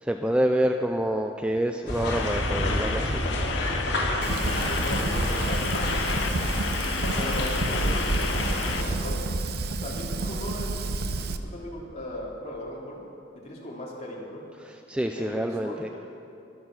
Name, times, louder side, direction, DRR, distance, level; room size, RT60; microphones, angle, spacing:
voice 1, 0.0-3.2 14.6-15.9, right 1 dB, 5° right, 5 dB, 0.4 m, -27 dB
sound 1, 1.9-8.9, left 1 dB, 60° left, 3.3 m, -29 dB
sound 2, 2.1-8.8, left 7 dB, 80° left, 0.6 m, -33 dB
Fire, 4.2-11.4, right 3 dB, 55° right, 0.7 m, -30 dB
voice 2, 4.4-5.7 7.1-9.3 9.8-13.0 13.4-14.4 15.2-15.9, left 1 dB, 35° left, -4 dB, 3.0 m, -38 dB
22.5 x 7.5 x 6.1 m, 2.9 s
head